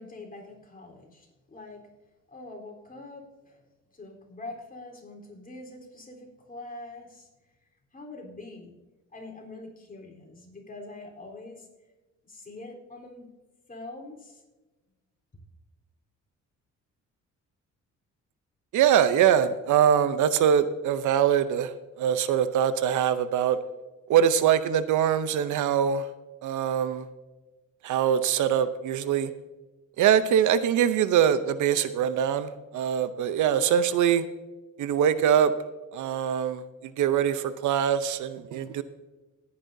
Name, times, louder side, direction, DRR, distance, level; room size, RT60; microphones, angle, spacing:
voice 1, 0.0-1.9 2.3-3.6 3.9-7.3 7.9-8.7 9.1-11.7 12.2-13.3 13.7-14.4, left 2 dB, 30° left, -1 dB, 3.8 m, -44 dB
voice 2, 18.7-23.6 24.1-26.1 26.4-27.1 27.8-29.3 30.0-34.2 34.8-35.5 35.9-38.8, right 9 dB, 75° right, 13 dB, 0.7 m, -23 dB
18.5 x 9.7 x 2.7 m, 1.2 s
cardioid pair, 90°, 30 cm